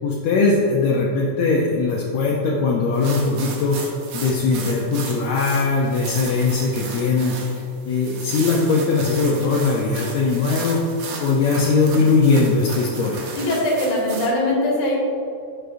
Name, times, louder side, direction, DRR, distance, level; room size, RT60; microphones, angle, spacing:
voice 1, 0.0-3.8 4.1-7.4 7.9-10.8 11.2-13.3, left 4 dB, 75° left, -4 dB, 2.0 m, -20 dB
sound 1, 2.9-14.3, right 4 dB, 65° right, 2.1 m, -34 dB
voice 2, 13.4-15.0, left 1 dB, 45° left, -4 dB, 2.6 m, -21 dB
11.0 x 6.5 x 2.6 m, 2.5 s
omnidirectional pair, 3.4 m